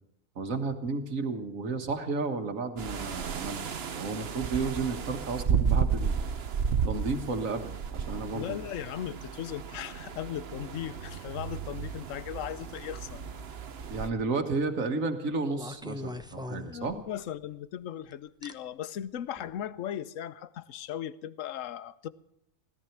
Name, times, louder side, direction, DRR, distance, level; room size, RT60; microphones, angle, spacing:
voice 1, 0.4-6.2 6.8-8.6 13.9-17.0, right 4 dB, 80° right, 1.9 m, -32 dB
sound 1, 2.8-14.1, right 6 dB, 55° right, 1.1 m, -33 dB
voice 2, 8.3-13.2 16.6-22.1, left 10 dB, 75° left, 1.1 m, -37 dB
sound 2, 13.8-14.2 15.5-17.3 18.4-18.5 19.4-19.6, left 1 dB, 5° right, 0.6 m, -41 dB
17.5 x 13.0 x 5.9 m
omnidirectional pair, 1.4 m